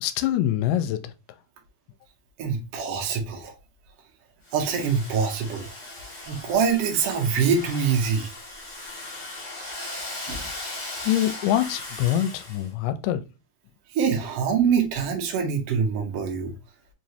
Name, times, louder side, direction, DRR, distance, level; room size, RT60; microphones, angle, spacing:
voice 1, 0.0-1.1 11.0-13.2, left 12 dB, 85° left, 2.1 m, -24 dB
voice 2, 2.4-3.5 4.5-5.7 6.3-8.3 10.3-10.5 13.9-16.5, right 6 dB, 70° right, 1.5 m, -24 dB
Domestic sounds home sounds, 4.4-12.7, left 2 dB, 30° left, 1.3 m, -38 dB
4.8 x 3.1 x 2.7 m
omnidirectional pair, 3.8 m